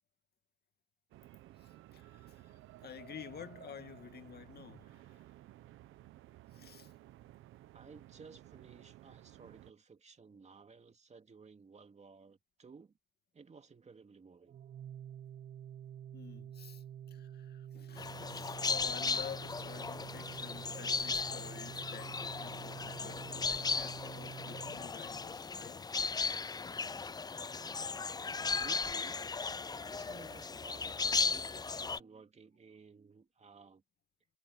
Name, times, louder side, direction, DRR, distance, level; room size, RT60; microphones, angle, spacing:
sound 1, 1.1-9.7, right 15 dB, 85° right, 1.0 m, -55 dB
voice 1, 1.6-5.3 6.5-6.9 16.1-25.9, left 8 dB, 55° left, 2.2 m, -51 dB
voice 2, 7.7-12.9 13.3-14.6 17.1-17.2 28.5-29.3 29.7-33.8, right 5 dB, 35° right, 2.4 m, -56 dB
Organ, 14.5-25.4, right 9 dB, 60° right, 1.2 m, -48 dB
sound 2, 18.0-32.0, left 4 dB, 20° left, 0.4 m, -36 dB
cardioid pair, 90°, 20 cm